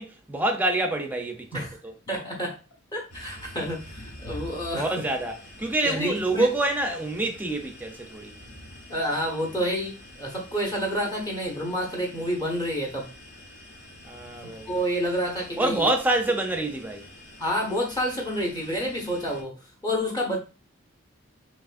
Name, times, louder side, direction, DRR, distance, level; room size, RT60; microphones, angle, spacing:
voice 1, 0.0-1.5 4.7-8.3 14.0-14.7 15.6-17.0, right 2 dB, 10° right, 0.6 m, -26 dB
voice 2, 2.1-2.6 2.9-4.9 5.8-6.5 8.9-13.1 14.7-15.9 17.4-19.6 19.8-20.4, equal, 20° left, 0.9 m, -29 dB
sound 1, 3.1-19.4, left 1 dB, 55° left, 1.2 m, -46 dB
5.1 x 3.0 x 2.5 m
head